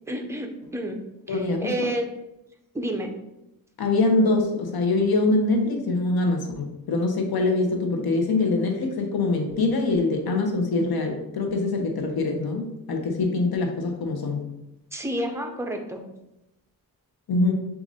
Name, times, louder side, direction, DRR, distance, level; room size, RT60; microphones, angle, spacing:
voice 1, 0.1-1.0 1.3-2.1 2.7-3.1 14.9-16.0, right 1 dB, 10° right, 3 dB, 0.5 m, -30 dB
voice 2, 1.3-1.9 3.8-14.4 17.3-17.5, left 3 dB, 85° left, 3 dB, 0.7 m, -24 dB
6.1 x 2.5 x 2.7 m, 0.90 s
wide cardioid pair, 120°, 36 cm